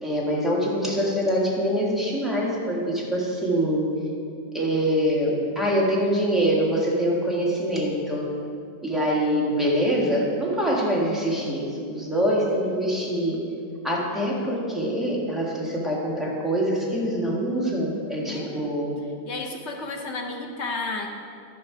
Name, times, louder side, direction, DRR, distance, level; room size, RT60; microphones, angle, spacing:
voice 1, 0.0-3.9 4.5-8.3 8.8-13.4 13.8-18.9, equal, ahead, -5 dB, 1.4 m, -24 dB
voice 2, 18.3-18.9 19.3-21.1, left 3 dB, 60° left, 2 dB, 0.7 m, -32 dB
12.0 x 5.2 x 4.8 m, 2.4 s
omnidirectional pair, 1.9 m